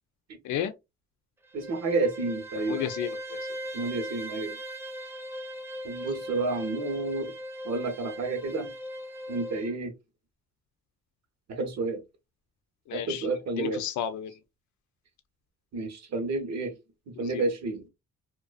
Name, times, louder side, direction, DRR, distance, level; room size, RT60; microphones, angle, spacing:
Bowed string instrument, 1.4-9.7, equal, 10° right, 0.4 m, -39 dB
voice 1, 1.5-2.9 3.7-4.6 5.8-7.3 7.6-8.7 9.3-9.9 11.5-12.0 12.9-13.8 15.7-16.8 17.1-17.9, right 3 dB, 60° right, 0.9 m, -30 dB
voice 2, 2.7-3.4 12.9-13.3 13.5-14.4 17.2-17.4, left 10 dB, 70° left, 0.5 m, -32 dB
2.5 x 2.2 x 2.3 m
cardioid pair, 90°, 30 cm